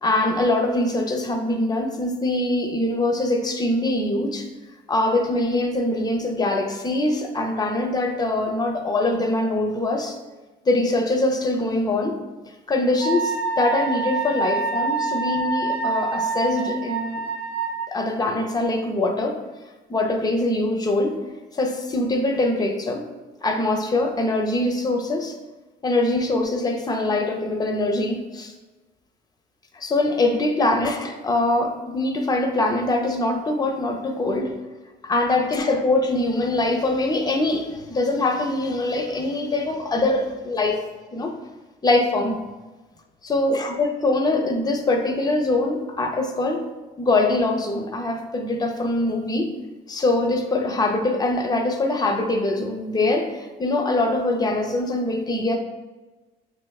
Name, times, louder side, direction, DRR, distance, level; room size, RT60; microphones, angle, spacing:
voice 1, 0.0-4.5 4.9-10.2 10.6-12.2 12.7-17.3 17.9-19.4 19.9-21.2 21.5-23.0 23.4-25.4 25.8-28.5 29.7-34.6 35.0-40.8 41.1-41.3 41.8-42.4 43.2-46.6 47.0-49.5 49.9-55.6, left 2 dB, 25° left, 4 dB, 0.6 m, -23 dB
Wind instrument woodwind instrument, 13.0-17.9, right 4 dB, 60° right, 0.6 m, -26 dB
6.1 x 3.3 x 2.3 m, 1.2 s
cardioid pair, 110°, 17 cm